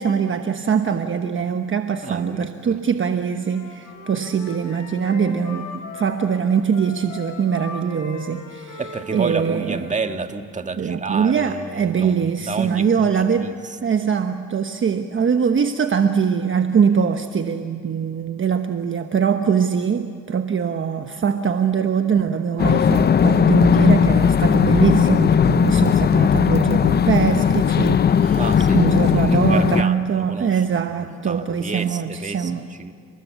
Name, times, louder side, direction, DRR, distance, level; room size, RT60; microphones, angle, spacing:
voice 1, 0.0-8.8 9.1-9.9 10.8-13.6 13.8-32.7, right 7 dB, 40° right, 7 dB, 1.1 m, -22 dB
voice 2, 2.0-2.8 8.8-13.6 28.3-30.5 31.0-32.5 32.8-32.9, right 4 dB, 25° right, 7 dB, 1.6 m, -30 dB
Wind instrument woodwind instrument, 3.4-10.0, left 4 dB, 80° left, 6.3 m, -38 dB
sound 1, 22.6-29.8, left 7 dB, 35° left, 0.5 m, -17 dB
29.5 x 20.5 x 8.2 m, 2.4 s
cardioid pair, 90°, 30 cm